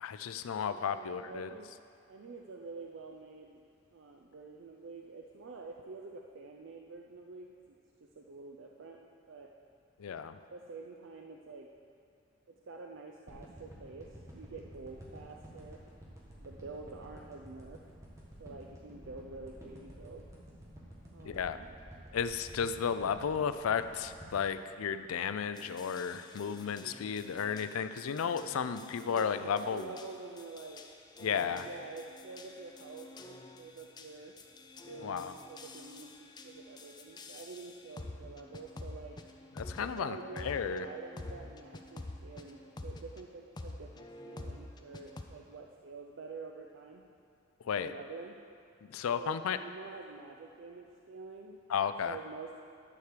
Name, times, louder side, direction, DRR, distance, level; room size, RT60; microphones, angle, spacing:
voice 1, 0.0-1.5 10.0-10.4 21.2-21.6 22.1-29.9 31.2-31.7 35.0-35.3 39.6-40.9 47.6-47.9 48.9-49.6 51.7-52.2, left 7 dB, 90° left, 11 dB, 0.4 m, -33 dB
voice 2, 0.6-1.7 2.1-3.6 3.9-9.0 9.3-9.5 10.5-11.7 12.5-15.8 16.4-17.8 18.4-20.2 21.1-21.7 28.8-30.8 31.2-34.3 34.9-39.2 39.8-47.0 47.6-48.4 49.2-51.6 52.1-52.5, right 3 dB, 65° right, 1 dB, 0.5 m, -48 dB
sound 1, 13.3-25.6 26.0-26.1, equal, 15° right, 1.4 m, -51 dB
sound 2, 25.5-43.2 43.6-45.2, left 2 dB, 20° left, 0.4 m, -49 dB
11.5 x 4.7 x 6.6 m, 2.3 s
head